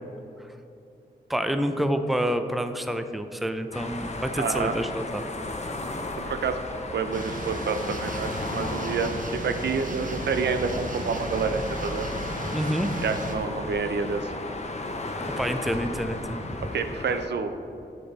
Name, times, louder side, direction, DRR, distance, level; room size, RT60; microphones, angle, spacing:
voice 1, 1.3-5.3 12.5-13.0 15.2-16.6, equal, ahead, 8 dB, 0.6 m, -28 dB
sound 1, 3.7-17.3, left 2 dB, 40° left, 0.9 m, -35 dB
voice 2, 4.4-4.7 6.2-6.6 6.9-12.1 13.0-14.3 16.7-17.5, right 5 dB, 70° right, 8 dB, 0.5 m, -28 dB
sound 2, 7.1-13.3, right 2 dB, 45° right, 1.1 m, -35 dB
8.4 x 6.1 x 4.0 m, 2.8 s
cardioid pair, 40°, 18 cm